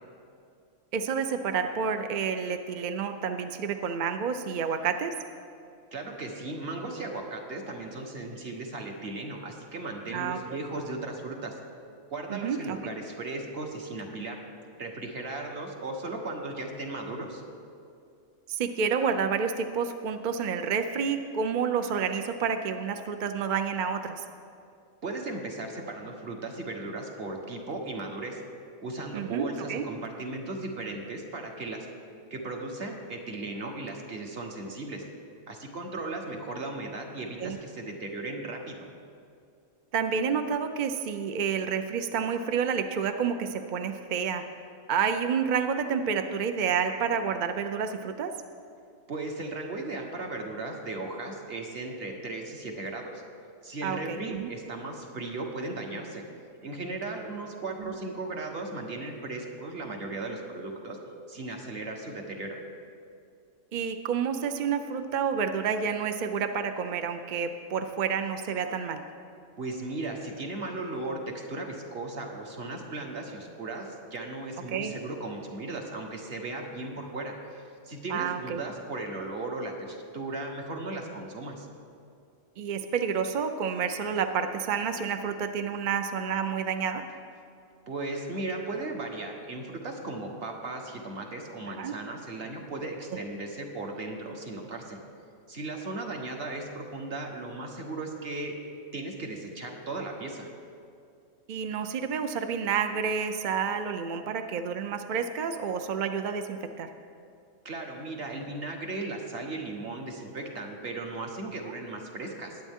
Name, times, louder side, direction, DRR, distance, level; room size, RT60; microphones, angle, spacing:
voice 1, 0.9-5.1 10.1-10.4 12.3-12.8 18.5-24.2 29.1-29.9 37.4-37.6 39.9-44.4 44.9-48.3 53.8-54.5 57.8-57.9 63.7-69.0 74.7-74.9 78.1-78.6 82.6-87.0 91.7-91.9 101.5-106.9, right 6 dB, 65° right, 7 dB, 0.4 m, -29 dB
voice 2, 5.9-11.5 12.1-14.4 14.8-17.4 25.0-28.4 28.8-31.9 32.3-35.0 35.5-38.8 49.1-53.2 53.6-56.2 56.6-61.0 61.3-62.6 69.6-81.7 87.9-95.0 95.5-98.6 98.9-100.5 107.6-112.6, right 2 dB, 45° right, 1 dB, 1.4 m, -36 dB
20.0 x 8.3 x 3.6 m, 2.4 s
omnidirectional pair, 1.4 m